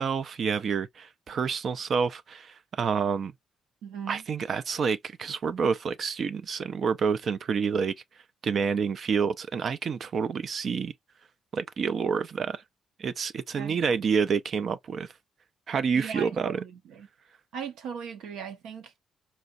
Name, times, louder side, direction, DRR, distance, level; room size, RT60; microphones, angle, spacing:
voice 1, 0.0-3.3 4.1-7.9 8.4-10.9 11.5-12.6 13.0-15.1 15.7-16.6, right 6 dB, 55° right, 0.3 m, -28 dB
voice 2, 3.8-4.2 13.6-14.0 15.9-17.1 17.5-19.0, right 7 dB, 85° right, 0.7 m, -39 dB
4.1 x 2.3 x 2.5 m
cardioid pair, 90°, 0 cm